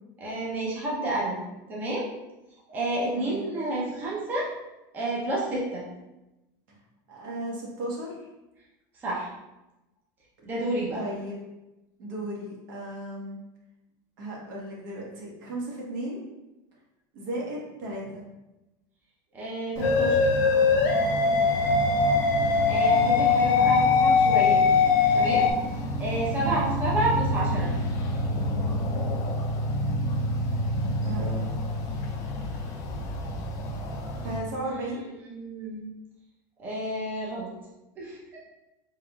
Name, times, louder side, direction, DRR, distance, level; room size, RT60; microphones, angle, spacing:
voice 1, 0.2-1.4 1.7-2.1 2.7-4.5 4.9-5.8 9.0-9.3 10.4-11.0 19.3-20.3 22.4-24.6 25.1-25.5 26.0-27.7 34.8-35.9 36.6-37.5 38.0-38.2, right 2 dB, 15° right, -5 dB, 0.6 m, -30 dB
voice 2, 7.1-8.3 10.9-11.3 12.0-13.4 14.2-16.2 17.1-18.2 21.4-21.6 26.4-26.6 31.0-31.4 34.2-35.1, right 1 dB, 70° right, -3 dB, 1.3 m, -35 dB
sound 1, 19.8-25.5, left 5 dB, 85° left, 0.7 m, -21 dB
sound 2, 19.8-34.4, equal, 30° left, 0.5 m, -30 dB
4.1 x 3.5 x 2.3 m, 1.0 s
supercardioid pair, 175°, 11 cm